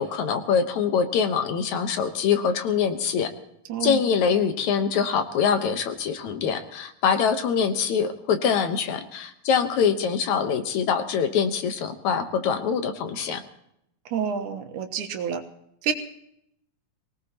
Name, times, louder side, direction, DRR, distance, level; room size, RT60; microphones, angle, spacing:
voice 1, 0.0-3.3 3.8-13.4, left 7 dB, 70° left, 8 dB, 2.4 m, -24 dB
voice 2, 3.7-4.0 14.1-15.4 15.8-15.9, right 7 dB, 75° right, 6 dB, 2.7 m, -28 dB
24.0 x 18.0 x 3.0 m, 0.77 s
omnidirectional pair, 3.6 m